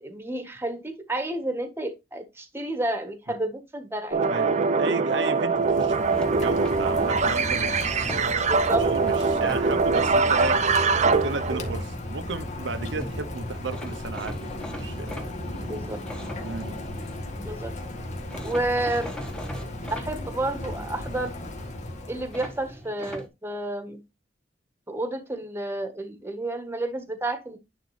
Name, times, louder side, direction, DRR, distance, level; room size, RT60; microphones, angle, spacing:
voice 1, 0.0-4.2 8.5-8.9 15.6-16.0 17.4-17.7 18.4-19.1 19.9-21.3 22.1-24.0 24.9-27.6, right 1 dB, 15° right, 1.4 m, -30 dB
sound 1, 4.1-11.8, right 4 dB, 40° right, 0.7 m, -23 dB
voice 2, 4.3-10.6 11.1-14.5 14.8-15.3 16.4-16.7, right 3 dB, 85° right, 0.9 m, -34 dB
Rain, 5.5-22.8, left 1 dB, 40° left, 1.8 m, -35 dB
sound 2, 5.8-7.2 7.8-8.6 9.1-9.6 12.7-12.8 13.0-13.2 13.7-17.2 18.3-20.1 22.3-23.3, equal, 5° left, 1.4 m, -40 dB
10.0 x 3.7 x 3.3 m
head